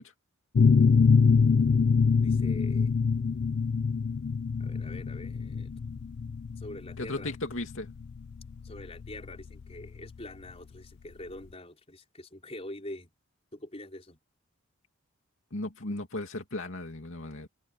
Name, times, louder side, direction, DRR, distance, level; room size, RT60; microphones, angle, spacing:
sound 1, 0.6-10.0, left 5 dB, 50° left, 0.3 m, -24 dB
voice 1, 2.2-2.9 4.6-5.7 6.6-7.4 8.6-13.1 13.5-14.2, left 1 dB, 30° left, 4.8 m, -44 dB
voice 2, 7.0-7.9 15.5-17.5, left 2 dB, 70° left, 2.6 m, -36 dB
open air
head